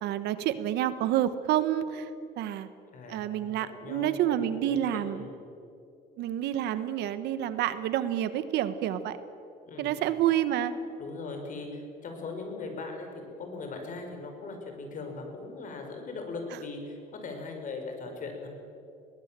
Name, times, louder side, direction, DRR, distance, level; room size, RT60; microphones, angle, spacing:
voice 1, 0.0-2.1 2.4-2.7 3.1-5.2 6.2-9.2 9.8-10.7, right 11 dB, 80° right, 12 dB, 1.3 m, -28 dB
voice 2, 2.9-5.4 9.6-10.0 11.0-18.5, left 3 dB, 50° left, 3 dB, 5.5 m, -40 dB
22.0 x 19.0 x 7.6 m, 2.6 s
cardioid pair, 110°, 17 cm